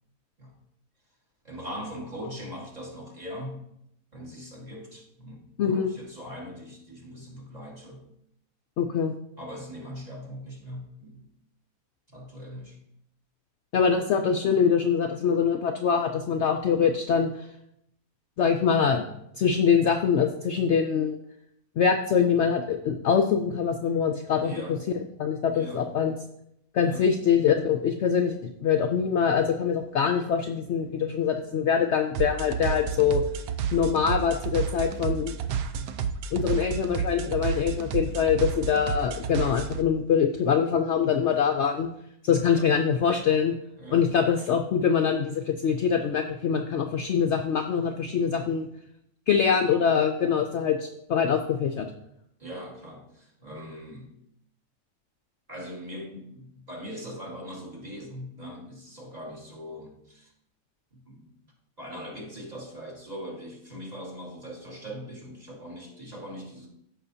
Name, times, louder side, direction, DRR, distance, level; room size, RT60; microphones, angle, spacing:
voice 1, 1.4-3.6 4.1-8.0 9.4-11.3 12.1-12.8 24.4-24.8 25.5-25.9 26.8-27.1 35.0-35.3 42.5-42.7 43.8-44.0 52.4-54.2 55.5-60.3 60.9-61.3 61.8-66.7, equal, 30° right, -2 dB, 1.8 m, -41 dB
voice 2, 5.6-5.9 8.8-9.1 13.7-17.3 18.4-19.1 19.4-21.2 21.8-24.5 24.9-26.1 26.7-33.2 33.7-35.3 36.3-41.9 42.2-43.5 43.9-48.7 49.3-51.9, left 7 dB, 65° left, 6 dB, 0.7 m, -24 dB
sound 1, 32.1-39.8, right 7 dB, 80° right, 1.1 m, -31 dB
14.0 x 5.5 x 2.7 m, 0.78 s
omnidirectional pair, 1.5 m